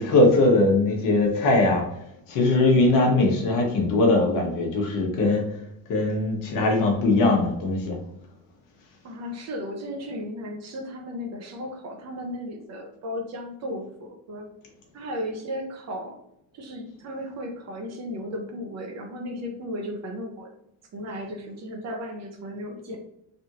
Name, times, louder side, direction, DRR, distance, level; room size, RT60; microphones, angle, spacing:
voice 1, 0.0-1.8 2.3-5.5 5.9-8.0, left 2 dB, 60° left, 1 dB, 1.1 m, -20 dB
voice 2, 9.0-14.5 14.9-16.2 16.5-20.5 20.9-23.0, equal, 45° right, 3 dB, 0.8 m, -35 dB
3.4 x 2.5 x 2.8 m, 0.77 s
cardioid pair, 135°, 38 cm